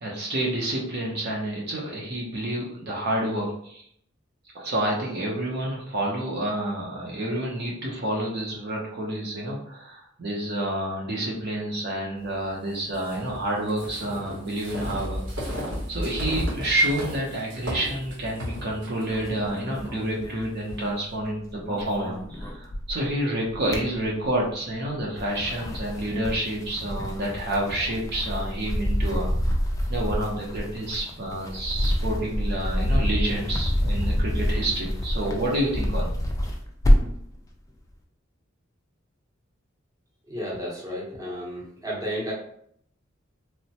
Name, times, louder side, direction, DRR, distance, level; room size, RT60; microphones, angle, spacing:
voice 1, 0.0-3.8 4.5-15.5 15.9-29.3 29.9-36.2, right 1 dB, 55° right, -3 dB, 0.6 m, -29 dB
sound 1, 12.9-20.8, equal, 85° right, 1.1 m, -34 dB
sound 2, 19.1-21.2 21.5-23.1 23.5-24.5 25.0-37.3, equal, 15° left, 0.3 m, -27 dB
voice 2, 40.2-42.3, equal, 15° right, -5 dB, 0.8 m, -32 dB
3.0 x 2.1 x 2.7 m, 0.68 s
head